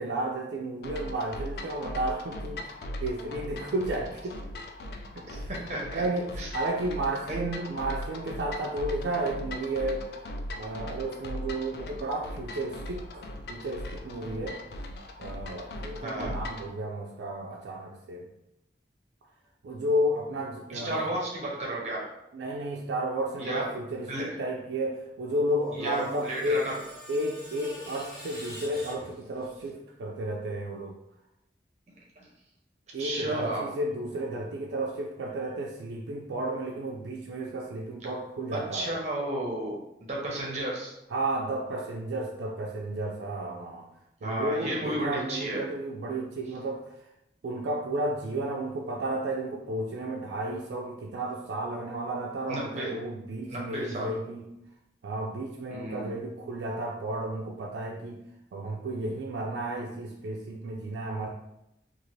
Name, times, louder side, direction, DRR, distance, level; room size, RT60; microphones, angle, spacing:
voice 1, 0.0-2.7 3.0-4.4 5.2-5.5 5.9-10.1 10.6-14.6 15.2-18.3 19.6-21.0 22.3-26.7 27.1-30.9 32.9-39.0 41.1-43.9 44.2-46.8 47.4-54.5 55.0-58.2 58.5-61.3, right 1 dB, 85° right, -1 dB, 0.3 m, -32 dB
sound 1, 0.8-16.7, left 1 dB, 65° left, 0.3 m, -39 dB
voice 2, 5.3-6.0 6.4-6.5 7.3-7.4 16.0-16.3 20.7-22.1 23.4-24.4 25.7-26.8 32.2-32.3 33.0-33.7 38.5-40.9 44.2-45.6 52.5-53.0 53.4-54.1 55.7-56.1, right 1 dB, 40° right, -3 dB, 0.7 m, -33 dB
Screech, 25.4-29.7, equal, 25° left, 1.0 m, -46 dB
2.6 x 2.4 x 3.0 m, 0.86 s
head